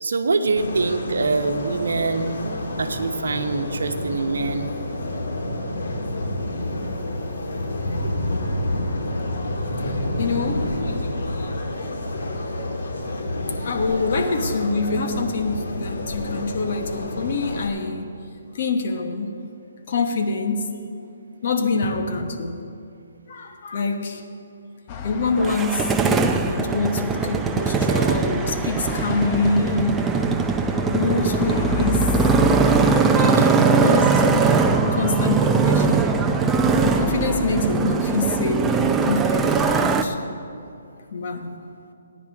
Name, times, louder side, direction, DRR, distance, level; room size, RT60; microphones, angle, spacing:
voice 1, 0.0-2.4 2.8-4.7 33.4-33.5 33.9-34.0, right 3 dB, 85° right, 7 dB, 0.9 m, -24 dB
sound 1, 0.6-17.7, left 1 dB, 70° left, 1.9 m, -28 dB
voice 2, 9.3-9.9 10.2-10.7 13.6-18.1 18.5-19.4 19.9-20.7 21.4-22.6 23.3-24.2 25.0-30.1 30.9-32.1 33.2-36.1 36.8-40.2 41.1-41.5, left 3 dB, 50° left, 4 dB, 1.2 m, -25 dB
sound 2, 24.9-37.7, left 6 dB, 25° left, 0.7 m, -33 dB
Motorcycle, 25.4-40.0, right 5 dB, 10° right, 0.4 m, -20 dB
17.0 x 10.0 x 3.6 m, 2.5 s
hypercardioid pair, 160°, 0 cm